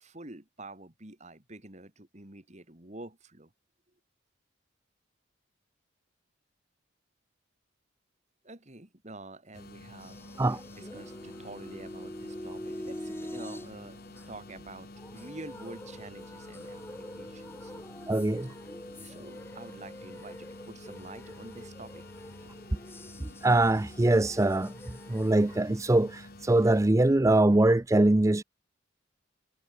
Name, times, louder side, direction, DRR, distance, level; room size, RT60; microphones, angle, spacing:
voice 1, 0.0-3.5 8.4-17.8 19.0-22.0 22.4-22.6, right 2 dB, 35° right, 2.8 m, -48 dB
sound 1, 9.5-26.8, left 2 dB, 50° left, 1.8 m, -49 dB
sound 2, 10.0-25.6, left 1 dB, 10° left, 2.2 m, -45 dB
voice 2, 18.1-18.5 23.4-24.7 25.1-28.4, right 2 dB, 15° right, 0.5 m, -23 dB
head